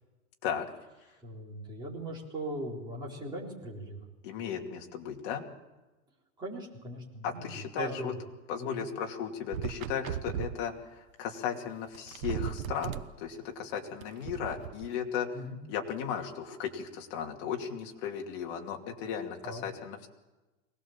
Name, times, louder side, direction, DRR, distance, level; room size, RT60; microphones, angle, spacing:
voice 1, 1.2-4.0 6.4-8.1 8.6-8.8 15.3-15.6 19.4-19.6, right 1 dB, 10° right, -3 dB, 4.0 m, -39 dB
voice 2, 4.2-5.4 7.2-8.1 8.5-15.4 15.7-20.1, left 7 dB, 40° left, 1 dB, 2.7 m, -36 dB
sound 1, 9.5-10.6 11.7-11.8 11.9-13.1 14.0-14.9, right 9 dB, 85° right, 1.2 m, -36 dB
23.0 x 19.0 x 7.3 m, 1.1 s
supercardioid pair, 175°, 40 cm